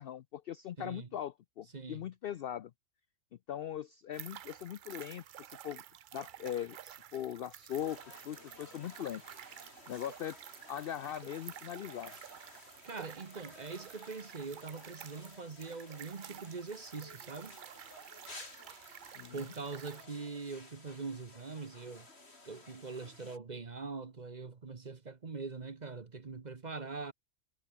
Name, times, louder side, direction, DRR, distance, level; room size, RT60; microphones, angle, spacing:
voice 1, 0.0-2.7 3.5-5.8 6.1-9.2 9.9-10.4 10.7-12.1 19.2-19.4, left 10 dB, 70° left, 0.5 m, -40 dB
voice 2, 0.8-1.1 1.7-2.0 12.8-17.6 19.3-22.1 22.4-27.1, right 4 dB, 35° right, 1.1 m, -43 dB
sound 1, 4.1-20.0, right 10 dB, 80° right, 0.4 m, -51 dB
sound 2, 7.7-23.4, left 2 dB, 45° left, 4.0 m, -55 dB
omnidirectional pair, 1.5 m